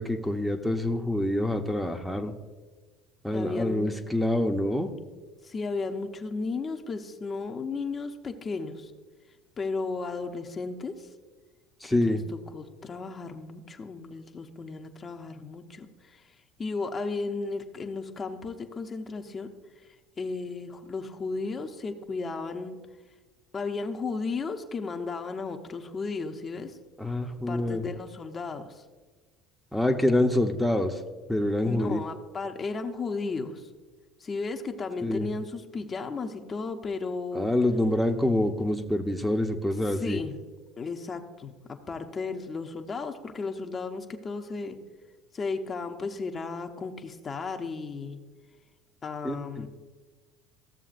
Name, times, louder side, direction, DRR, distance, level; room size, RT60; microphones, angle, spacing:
voice 1, 0.0-2.3 3.2-4.9 11.8-12.2 27.0-27.8 29.7-31.0 31.3-32.0 35.0-35.3 37.3-40.2 49.2-49.7, left 1 dB, ahead, 2 dB, 0.8 m, -26 dB
voice 2, 3.3-3.9 5.4-8.9 9.6-11.1 11.8-12.2 12.5-19.5 19.8-22.8 23.5-26.8 27.5-28.8 31.6-33.7 34.2-37.5 39.9-40.4 40.8-44.8 45.3-48.2 49.0-49.7, left 4 dB, 35° left, 4 dB, 0.8 m, -34 dB
15.0 x 6.9 x 2.5 m, 1.3 s
hypercardioid pair, 80°, 0 cm